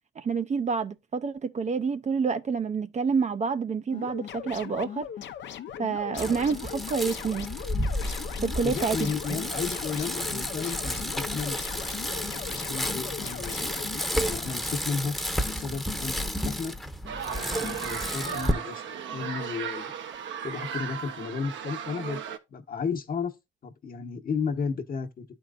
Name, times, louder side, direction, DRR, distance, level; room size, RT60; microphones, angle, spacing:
voice 1, 0.2-5.1 5.8-7.5 8.4-9.4, right 5 dB, 35° right, 0.5 m, -28 dB
sound 1, 3.9-14.1, left 9 dB, 65° left, 0.7 m, -39 dB
Bicycle, 6.2-18.5, equal, ahead, 0.9 m, -32 dB
voice 2, 8.6-11.9 12.4-13.7 14.1-15.1 15.4-16.7 17.2-19.9 20.4-22.2 22.5-23.3 23.6-25.2, left 5 dB, 45° left, 1.1 m, -33 dB
sound 2, 17.1-22.4, right 7 dB, 70° right, 0.9 m, -36 dB
12.0 x 4.6 x 2.4 m
cardioid pair, 90°, 20 cm